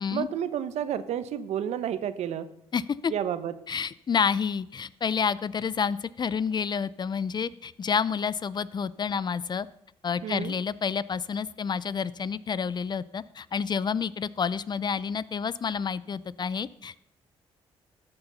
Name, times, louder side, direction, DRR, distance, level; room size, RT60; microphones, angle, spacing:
voice 1, 0.1-2.5 3.1-3.5 10.2-10.5, right 9 dB, 75° right, 13 dB, 0.9 m, -30 dB
voice 2, 2.7-3.1 3.7-9.7 10.0-17.0, left 6 dB, 40° left, 19 dB, 0.5 m, -29 dB
13.0 x 7.0 x 5.5 m, 0.80 s
cardioid pair, 75°, 11 cm